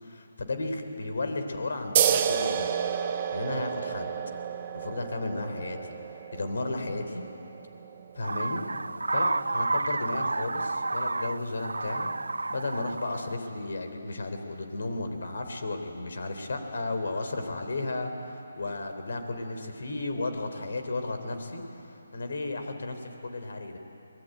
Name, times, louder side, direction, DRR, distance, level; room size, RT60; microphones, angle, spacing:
voice 1, 0.0-2.7 3.3-4.1 4.7-6.0 6.3-7.2 8.2-8.6 9.1-12.1 12.5-21.6 21.9-23.8, left 2 dB, 65° left, 6 dB, 3.6 m, -34 dB
sound 1, 2.0-9.1, right 8 dB, 30° right, 1.2 m, -31 dB
sound 2, 8.2-13.4, right 3 dB, 80° right, 0.5 m, -30 dB
24.5 x 20.0 x 9.2 m, 2.9 s
figure-of-eight pair, 150°, 0 cm